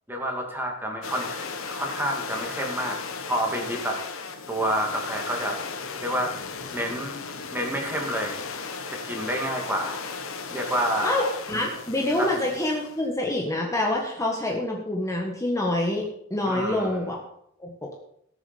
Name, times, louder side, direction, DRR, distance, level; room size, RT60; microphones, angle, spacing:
voice 1, 0.1-3.0 3.3-4.0 4.5-5.6 6.0-6.3 6.7-7.1 7.5-8.4 8.9-10.0 10.5-11.3 12.2-12.3 16.4-17.0, equal, 10° right, 1 dB, 2.5 m, -28 dB
sound 1, 1.0-13.0, left 5 dB, 70° left, 1.4 m, -36 dB
voice 2, 11.0-17.2 17.6-17.9, left 1 dB, 15° left, -1 dB, 1.7 m, -26 dB
17.5 x 7.2 x 5.4 m, 0.72 s
head